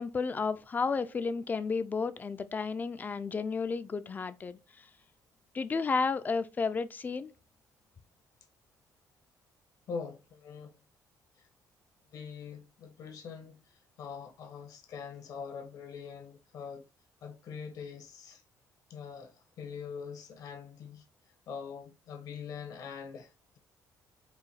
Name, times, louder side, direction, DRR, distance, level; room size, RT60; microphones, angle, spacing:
voice 1, 0.0-4.6 5.5-7.3, left 4 dB, 25° left, 0.4 m, -32 dB
voice 2, 9.9-10.8 11.4-11.5 12.1-16.9 17.2-18.4 18.9-21.0 21.5-23.6, left 6 dB, 70° left, 1.0 m, -43 dB
4.7 x 2.3 x 4.1 m
cardioid pair, 120°, 7 cm